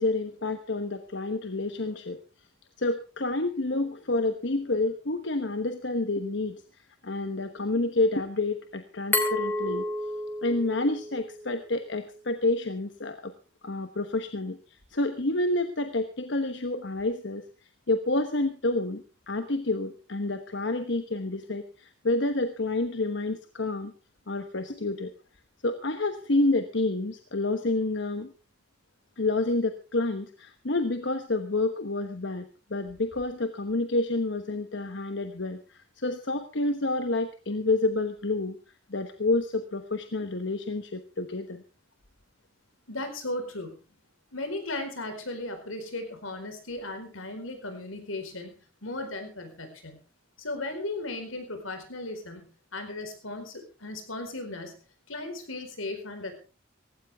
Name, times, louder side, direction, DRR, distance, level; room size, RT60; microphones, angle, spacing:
voice 1, 0.0-2.2 2.8-6.6 7.0-9.9 10.4-13.3 13.6-14.6 14.9-17.5 17.9-23.9 24.3-25.1 25.6-28.3 29.2-38.6 38.9-41.6, left 2 dB, 60° left, 9 dB, 1.1 m, -29 dB
Glass, 9.1-11.9, left 1 dB, 10° left, 2.6 m, -31 dB
voice 2, 42.9-43.8 44.3-50.0 50.4-54.8 55.1-56.3, left 2 dB, 85° left, 7 dB, 4.6 m, -36 dB
17.0 x 16.0 x 3.5 m, 0.33 s
head